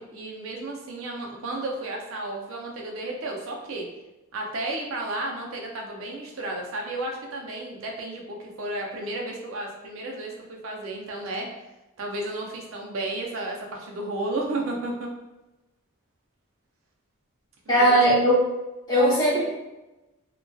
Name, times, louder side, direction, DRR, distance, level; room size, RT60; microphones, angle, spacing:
voice 1, 0.0-3.9 4.3-11.5 12.0-15.1 17.7-18.0 18.9-19.1, right 2 dB, 75° right, 0 dB, 0.5 m, -33 dB
voice 2, 17.7-18.4 18.9-19.4, right 1 dB, 20° left, -9 dB, 0.8 m, -19 dB
2.5 x 2.2 x 2.2 m, 1.0 s
head